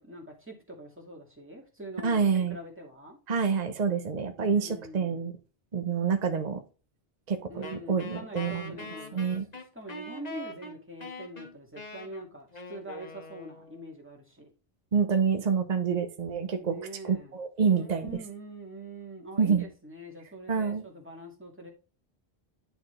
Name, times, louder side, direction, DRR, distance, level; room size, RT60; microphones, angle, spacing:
voice 1, 0.0-3.2 4.4-5.3 7.5-9.4 9.7-14.5 16.6-17.4 17.7-21.7, right 1 dB, 10° right, -1 dB, 2.1 m, -44 dB
voice 2, 2.0-2.6 3.3-5.3 5.7-6.6 7.3-8.8 9.1-9.5 14.9-16.8 17.0-18.1 19.4-19.6 20.5-20.8, right 6 dB, 40° right, 6 dB, 1.0 m, -27 dB
Wind instrument woodwind instrument, 7.6-13.9, left 1 dB, 40° left, 1.2 m, -43 dB
10.5 x 4.3 x 3.3 m, 0.33 s
omnidirectional pair, 1.1 m